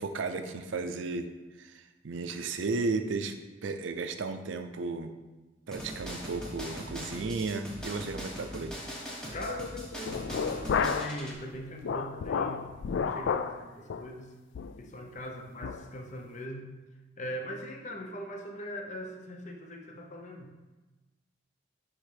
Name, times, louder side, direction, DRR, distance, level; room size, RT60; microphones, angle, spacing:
voice 1, 0.0-1.3 1.6-3.4 3.6-5.1 5.7-8.8, right 3 dB, 80° right, 8 dB, 0.5 m, -34 dB
sound 1, 5.7-11.3, equal, 5° left, 1.0 m, -40 dB
voice 2, 9.3-12.8 13.1-14.4 14.8-16.7 17.2-20.6, left 1 dB, 40° left, 2 dB, 0.7 m, -40 dB
sound 2, 10.1-11.2 11.5-13.6 13.9-14.1 14.5-14.8 15.2-15.3 15.6-15.8, left 6 dB, 70° left, 0.3 m, -31 dB
9.7 x 3.6 x 3.4 m, 1.2 s
head